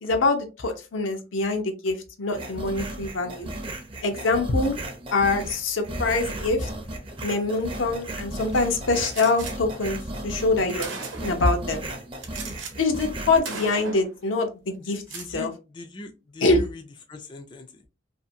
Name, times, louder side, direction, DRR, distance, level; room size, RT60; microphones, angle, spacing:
voice 1, 0.0-3.5 4.0-4.7 5.1-6.7 7.2-11.8 12.8-15.0 15.3-15.5 16.4-16.7, left 3 dB, 85° left, 5 dB, 0.7 m, -24 dB
sound 1, 2.3-13.4, right 1 dB, 30° right, 0.6 m, -35 dB
Gunshot gunfire, 9.1-9.5 10.4-10.5 10.8-11.5 12.2-12.7 13.0-13.2 13.4-14.1 14.9-15.3, right 4 dB, 75° right, 0.8 m, -36 dB
voice 2, 14.8-17.9, left 3 dB, 25° left, 5 dB, 0.3 m, -42 dB
2.6 x 2.5 x 2.6 m, 0.30 s
head